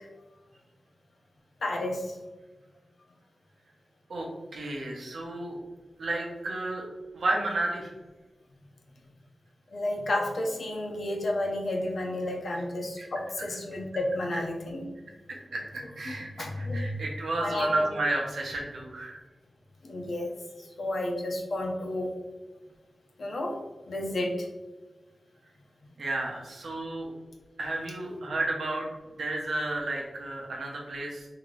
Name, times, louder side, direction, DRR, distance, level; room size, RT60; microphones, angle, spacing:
voice 1, 1.6-2.1 9.7-14.9 16.1-16.9 17.4-17.9 19.8-20.3 20.8-22.1 23.2-23.6 23.9-24.5, left 1 dB, 70° left, 0 dB, 0.8 m, -31 dB
voice 2, 4.5-5.6 6.0-6.8 7.1-7.9 13.0-13.1 15.5-19.2 26.0-27.1 27.6-28.9 29.2-31.3, right 2 dB, 80° right, -1 dB, 0.9 m, -32 dB
3.8 x 2.8 x 3.3 m, 1.2 s
wide cardioid pair, 100°, 0 cm